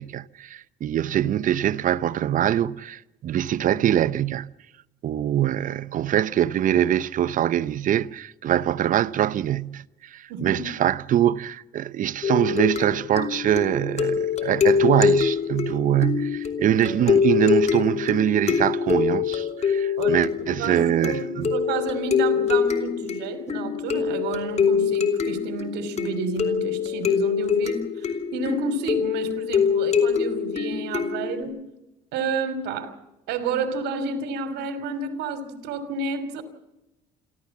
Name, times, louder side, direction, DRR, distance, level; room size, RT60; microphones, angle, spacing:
voice 1, 0.0-4.5 5.0-9.8 10.1-21.5, right 11 dB, 50° right, 0.7 m, -23 dB
voice 2, 10.3-10.6 20.0-20.3 20.6-21.2 21.5-31.6 32.1-32.9 33.3-36.4, right 4 dB, 85° right, 3.1 m, -30 dB
sound 1, 12.2-31.4, left 6 dB, 40° left, 3.0 m, -24 dB
28.0 x 13.5 x 7.2 m
cardioid pair, 110°, 17 cm